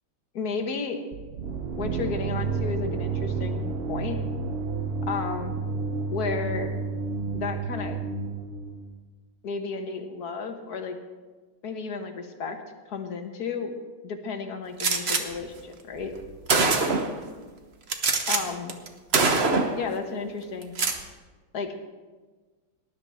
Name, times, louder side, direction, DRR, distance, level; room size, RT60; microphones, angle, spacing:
voice 1, 0.3-1.0 1.8-4.2 5.1-5.6 6.1-6.7 7.3-8.0 9.4-11.0 11.6-12.6 12.9-13.7 14.0-16.1 18.3-18.7 19.7-20.8 21.5-21.8, left 4 dB, 55° left, 5 dB, 1.6 m, -33 dB
sound 1, 1.1-9.0, right 4 dB, 60° right, 0.6 m, -30 dB
Gunshot gunfire, 14.8-15.2 16.0-16.1 16.5-17.2 17.9-18.4 18.7-18.9 19.1-19.8 20.6-21.0, right 3 dB, 40° right, 1.1 m, -23 dB
18.5 x 11.0 x 4.3 m, 1.3 s
omnidirectional pair, 2.3 m